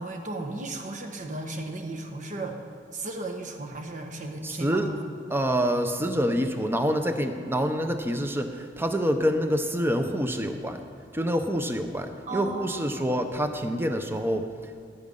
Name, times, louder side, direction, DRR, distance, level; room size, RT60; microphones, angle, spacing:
voice 1, 0.0-2.6 2.9-5.1 12.3-13.1, right 2 dB, 45° right, 3 dB, 1.3 m, -35 dB
voice 2, 4.4-4.9 5.3-10.8 11.1-14.5, equal, 15° right, 7 dB, 0.8 m, -26 dB
15.5 x 8.4 x 5.5 m, 2.4 s
head